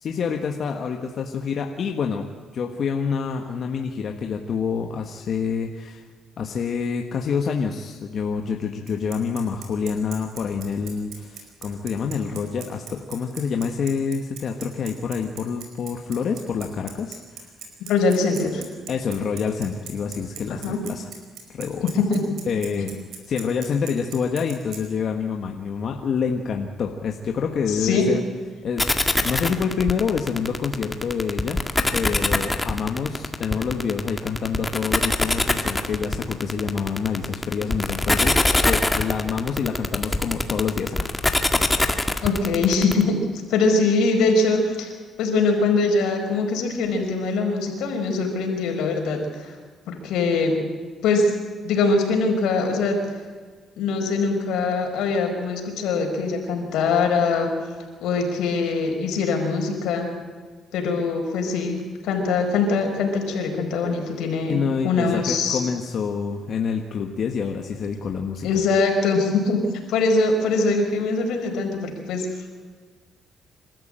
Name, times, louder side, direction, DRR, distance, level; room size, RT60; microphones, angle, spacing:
voice 1, 0.0-6.0 6.4-17.5 18.9-21.1 21.5-21.9 22.5-22.9 23.3-28.2 28.6-28.9 29.2-41.1 64.5-68.5, left 6 dB, 60° left, 3 dB, 1.6 m, -27 dB
Bicycle, 8.9-24.8, right 7 dB, 80° right, 5.0 m, -39 dB
voice 2, 17.9-18.6 20.5-20.8 21.8-22.2 27.7-28.1 42.2-43.2 43.5-44.9 45.2-49.5 49.9-50.5 51.0-51.3 51.6-53.0 53.8-57.5 58.0-60.1 60.7-61.8 62.0-65.6 68.4-69.6 69.9-72.3, left 4 dB, 90° left, 2 dB, 5.1 m, -22 dB
sound 1, 28.8-43.0, left 2 dB, 15° left, 1.9 m, -22 dB
26.0 x 13.5 x 9.0 m, 1.5 s
cardioid pair, 90°, 0 cm